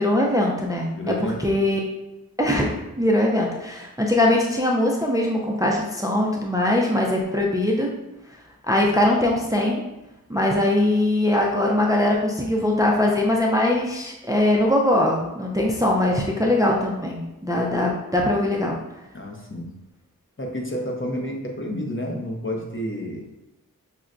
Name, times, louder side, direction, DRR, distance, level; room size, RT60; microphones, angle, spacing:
voice 1, 0.0-1.8 2.4-7.9 8.7-9.8 10.3-18.8, left 1 dB, 10° right, -1 dB, 0.4 m, -21 dB
voice 2, 1.0-1.5 19.1-19.7 20.4-23.3, equal, 35° left, 0 dB, 0.7 m, -30 dB
5.7 x 2.1 x 2.5 m, 0.93 s
wide cardioid pair, 40°, 36 cm